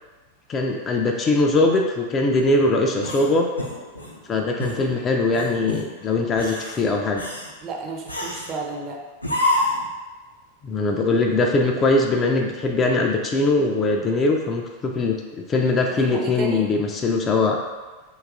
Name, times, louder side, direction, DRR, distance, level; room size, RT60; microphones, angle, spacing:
voice 1, 0.5-3.5 4.3-7.3 10.6-17.6, left 2 dB, 25° left, 1 dB, 0.3 m, -21 dB
sound 1, 3.0-4.2 4.6-4.8 5.3-5.9 6.3-6.8 7.2-7.5 8.1-8.6 9.2-9.9, left 1 dB, 85° left, 0.5 m, -27 dB
voice 2, 7.6-9.0 16.1-16.7, right 2 dB, 35° right, 0 dB, 0.5 m, -31 dB
2.9 x 2.3 x 3.5 m, 1.3 s
figure-of-eight pair, 90°, 0 cm